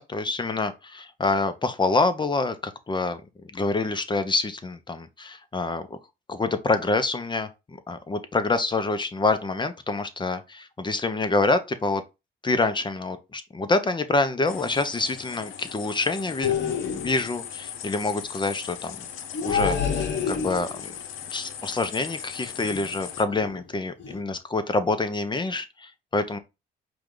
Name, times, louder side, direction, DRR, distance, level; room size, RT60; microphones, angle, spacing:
voice 1, 0.0-3.2 3.5-6.0 6.3-12.0 12.4-19.0 19.4-20.7 21.3-26.4, left 3 dB, 25° left, 0.7 m, -26 dB
sound 1, 14.5-23.2, left 9 dB, 85° left, 0.6 m, -39 dB
sound 2, 16.4-17.3 19.3-20.9 22.6-23.0 23.3-23.6 24.0-24.2, left 6 dB, 65° left, 1.0 m, -28 dB
4.9 x 2.4 x 3.8 m
cardioid pair, 90°, 20 cm